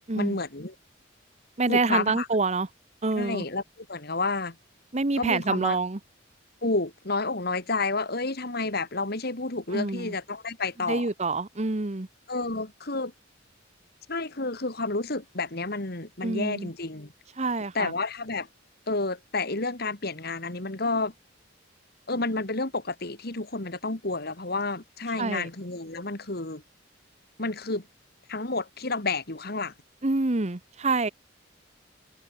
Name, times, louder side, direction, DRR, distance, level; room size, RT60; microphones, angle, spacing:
voice 1, 0.1-0.7 1.7-2.3 3.1-4.6 5.2-5.8 6.6-11.1 12.3-13.1 14.1-17.1 17.7-18.5 18.9-21.1 22.1-26.6 27.4-27.9 28.3-29.7, left 3 dB, 55° left, 2.7 m, -30 dB
voice 2, 1.6-2.7 3.0-3.4 4.9-6.0 9.7-10.1 10.9-12.1 16.2-16.7 17.4-17.9 25.2-25.5 30.0-31.1, right 3 dB, 35° right, 1.0 m, -27 dB
head